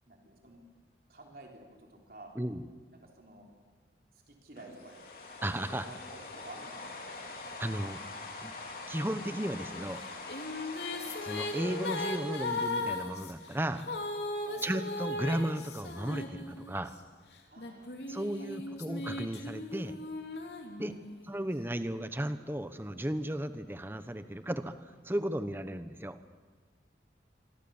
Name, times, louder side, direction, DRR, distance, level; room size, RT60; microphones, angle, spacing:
voice 1, 0.1-0.6 1.1-2.3 2.9-3.5 4.1-5.0 5.5-6.9 14.4-14.7 17.5-18.5 20.8-21.0, right 2 dB, 55° right, 1 dB, 3.8 m, -52 dB
sound 1, 4.6-13.8, left 3 dB, 55° left, 4.1 m, -44 dB
voice 2, 5.4-5.9 7.6-8.0 8.4-8.5 8.9-10.0 11.2-13.8 14.6-16.9 18.1-20.0 20.8-21.0 21.2-24.7 25.0-26.2, right 1 dB, 10° right, 11 dB, 1.0 m, -35 dB
sound 2, 10.0-16.9 17.6-21.3, left 2 dB, 75° left, 2.9 m, -37 dB
26.0 x 24.0 x 7.2 m, 1.4 s
head